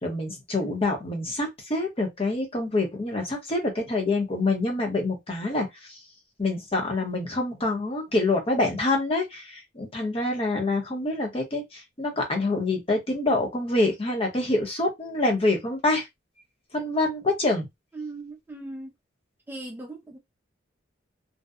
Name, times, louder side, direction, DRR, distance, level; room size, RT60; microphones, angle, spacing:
voice 1, 0.0-6.0 6.4-16.1 16.7-17.6, left 2 dB, 30° left, 0.8 m, -26 dB
voice 2, 17.9-18.9 19.5-20.2, right 2 dB, 10° right, 0.4 m, -38 dB
2.7 x 2.1 x 2.3 m
head